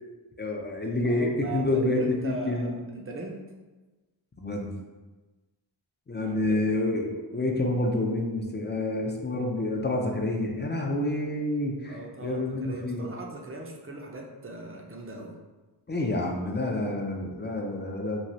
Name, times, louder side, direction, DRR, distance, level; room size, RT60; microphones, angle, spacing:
voice 1, 0.4-2.7 4.4-4.7 6.1-13.1 15.9-18.2, left 2 dB, 25° left, 1 dB, 0.4 m, -28 dB
voice 2, 1.0-3.5 6.2-6.8 11.9-15.4, right 2 dB, 30° right, 1 dB, 0.5 m, -39 dB
3.1 x 2.3 x 2.6 m, 1.2 s
wide cardioid pair, 40°, 46 cm